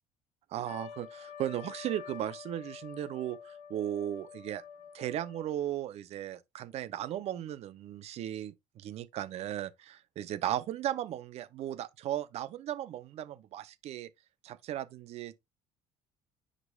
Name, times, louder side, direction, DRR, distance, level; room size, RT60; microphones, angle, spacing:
voice 1, 0.5-4.6 4.9-14.1 14.4-15.4, right 12 dB, 55° right, 0.7 m, -36 dB
Trumpet, 0.7-5.7, left 8 dB, 70° left, 1.1 m, -48 dB
9.6 x 5.2 x 2.4 m
cardioid pair, 125°, 13 cm